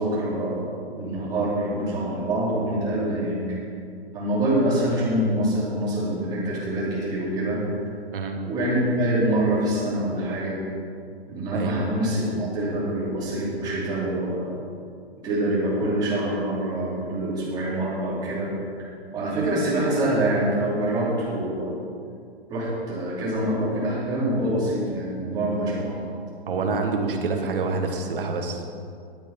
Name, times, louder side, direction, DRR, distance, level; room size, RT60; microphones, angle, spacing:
voice 1, 0.0-3.4 4.1-7.6 8.4-10.6 11.3-14.5 15.2-18.5 19.1-21.8 22.5-26.0, right 1 dB, 10° right, -8 dB, 2.8 m, -25 dB
voice 2, 11.5-11.9 26.5-28.6, right 4 dB, 55° right, 3 dB, 1.7 m, -27 dB
11.5 x 8.8 x 5.4 m, 2.3 s
hypercardioid pair, 175°, 32 cm